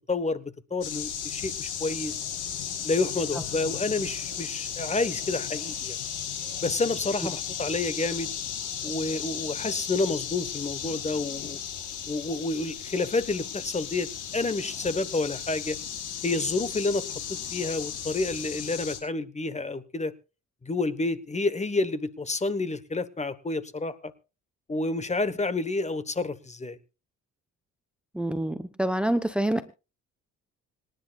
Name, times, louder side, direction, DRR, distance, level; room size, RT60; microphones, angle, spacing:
voice 1, 0.1-2.2 2.8-6.0 6.6-8.3 8.8-11.6 12.1-15.8 16.2-20.1 20.6-24.1 24.7-26.8, left 3 dB, 20° left, 1.2 m, -29 dB
sound 1, 0.8-19.0, left 8 dB, 85° left, 5.2 m, -35 dB
voice 2, 28.1-29.6, right 1 dB, 5° right, 1.0 m, -26 dB
26.0 x 10.5 x 2.4 m
cardioid pair, 90°, 30 cm